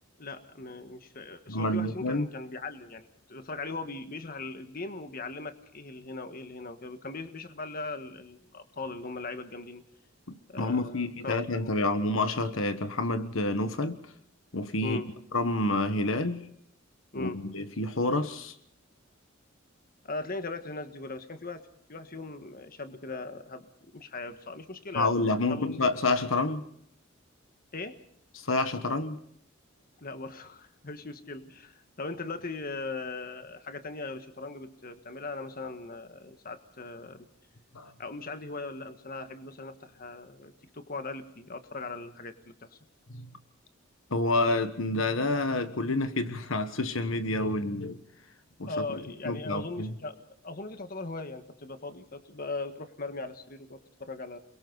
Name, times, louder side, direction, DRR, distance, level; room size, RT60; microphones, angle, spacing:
voice 1, 0.2-9.8 10.5-11.9 14.8-15.1 17.1-17.4 20.1-21.6 21.9-25.1 25.5-25.8 27.7-28.0 30.0-37.3 38.0-42.8 48.7-54.4, left 3 dB, 45° left, 1.5 m, -39 dB
voice 2, 1.5-2.3 10.3-14.0 14.5-15.0 15.3-16.5 17.1-18.5 24.9-26.6 28.3-29.2 37.7-37.9 43.1-43.3 44.1-48.0 48.6-49.9, left 2 dB, 80° left, 1.4 m, -28 dB
29.0 x 22.5 x 4.0 m
head